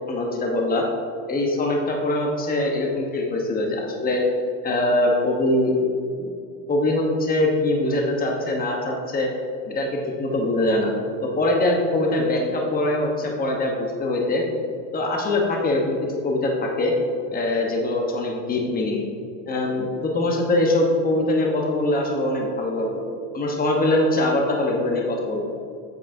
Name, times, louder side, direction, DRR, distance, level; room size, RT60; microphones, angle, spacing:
voice 1, 0.1-0.9 1.3-4.2 4.6-5.8 6.2-6.3 6.7-9.3 9.6-9.9 10.2-10.9 11.4-14.4 14.9-16.9 17.3-19.0 19.5-23.0 23.3-25.4, left 1 dB, 20° left, 0 dB, 1.2 m, -23 dB
8.2 x 7.9 x 2.8 m, 2.3 s
supercardioid pair, 115°, 40 cm